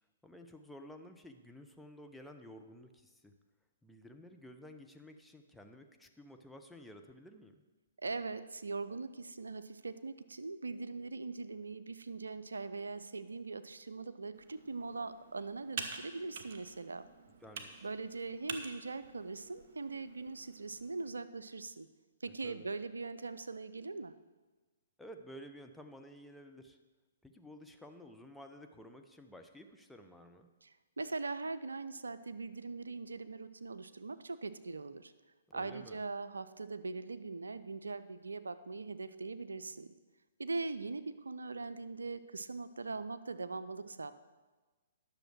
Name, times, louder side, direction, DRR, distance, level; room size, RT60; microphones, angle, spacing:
voice 1, 0.2-3.3 3.8-7.6 17.4-17.9 22.4-22.7 25.0-26.8 27.2-30.5 35.5-36.0, equal, 5° left, 4 dB, 0.8 m, -53 dB
voice 2, 8.0-17.1 17.8-21.9 22.2-24.1 30.6-35.1 35.5-39.9 40.4-44.1, right 3 dB, 80° right, 12 dB, 0.6 m, -41 dB
Computer keyboard, 14.3-21.1, right 5 dB, 50° right, 1.2 m, -48 dB
10.5 x 6.6 x 6.3 m, 1.3 s
figure-of-eight pair, 125°, 0 cm